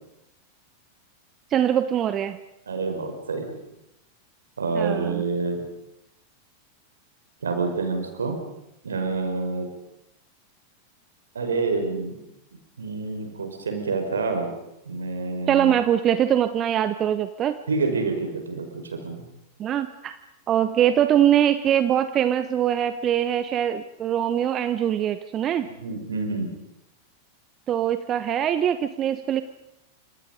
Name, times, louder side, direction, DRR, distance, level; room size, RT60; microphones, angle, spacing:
voice 1, 1.5-2.4 4.7-5.2 15.5-17.6 19.6-20.2 20.5-25.7 27.7-29.4, right 10 dB, 30° right, 12 dB, 1.1 m, -22 dB
voice 2, 2.7-3.5 4.6-5.6 7.4-8.4 8.8-9.7 11.3-12.2 12.8-14.5 14.9-15.8 17.7-19.3 25.6-26.5, right 4 dB, 70° right, 5 dB, 5.4 m, -27 dB
29.0 x 26.5 x 5.3 m, 0.86 s
figure-of-eight pair, 90°, 0 cm